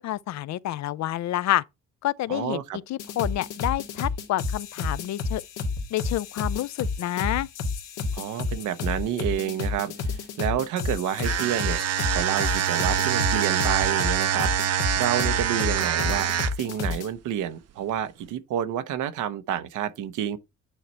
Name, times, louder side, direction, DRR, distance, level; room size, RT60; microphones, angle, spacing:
voice 1, 0.0-1.6 2.0-2.6 2.9-5.4 5.9-7.5, left 14 dB, 65° left, 0.5 m, -28 dB
voice 2, 2.3-2.8 8.1-11.8 12.1-16.3 16.6-20.4, right 10 dB, 85° right, 0.9 m, -29 dB
sound 1, 3.0-17.1, left 3 dB, 85° left, 1.7 m, -30 dB
sound 2, 11.2-16.7, right 9 dB, 55° right, 0.7 m, -25 dB
9.1 x 4.0 x 4.4 m
cardioid pair, 90°, 30 cm